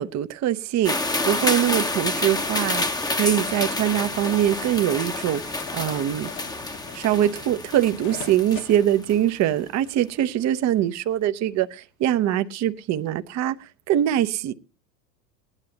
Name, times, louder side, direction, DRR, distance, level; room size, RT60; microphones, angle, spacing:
voice 1, 0.0-5.4 5.7-6.3 6.9-13.5 13.9-14.5, right 11 dB, 35° right, 0.8 m, -23 dB
sound 1, 0.8-9.4, left 2 dB, 10° left, 0.9 m, -28 dB
sound 2, 1.4-8.8, left 10 dB, 50° left, 1.3 m, -42 dB
19.0 x 9.8 x 2.8 m
hypercardioid pair, 90°, 48 cm